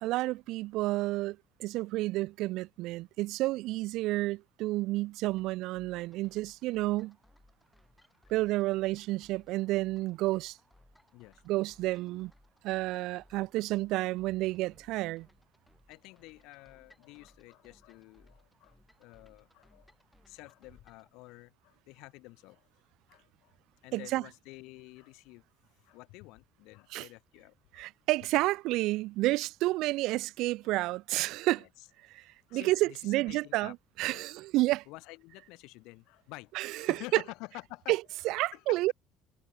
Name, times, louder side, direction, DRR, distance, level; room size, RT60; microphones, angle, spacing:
voice 1, 0.0-7.2 8.3-10.6 11.5-12.3 12.6-15.3 23.9-24.2 26.9-27.1 27.7-31.6 32.1-32.2 32.5-34.8 36.5-37.2 37.9-38.9, right 18 dB, 60° right, 0.3 m, -30 dB
sound 1, 5.2-21.1, left 1 dB, 5° left, 2.6 m, -65 dB
voice 2, 11.1-11.4 15.9-19.9 20.3-22.7 23.1-23.6 23.8-25.4 25.8-27.9 31.5-31.9 32.5-33.7 34.1-34.3 34.9-37.9 38.5-38.8, left 23 dB, 75° left, 1.9 m, -49 dB
cardioid pair, 180°, 0 cm